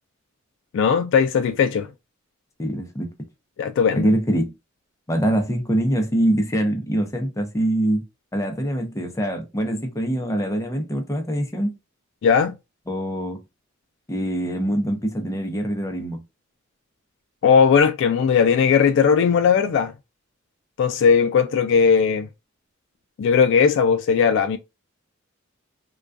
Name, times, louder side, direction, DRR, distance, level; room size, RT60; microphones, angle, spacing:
voice 1, 0.7-1.9 3.6-4.1 12.2-12.5 17.4-19.9 20.8-22.3 23.2-24.6, left 6 dB, 60° left, 0.3 m, -18 dB
voice 2, 2.6-3.1 3.9-4.5 5.1-8.0 8.3-11.7 12.9-13.4 14.1-16.2, right 1 dB, 15° left, 0.5 m, -24 dB
2.2 x 2.2 x 2.4 m
head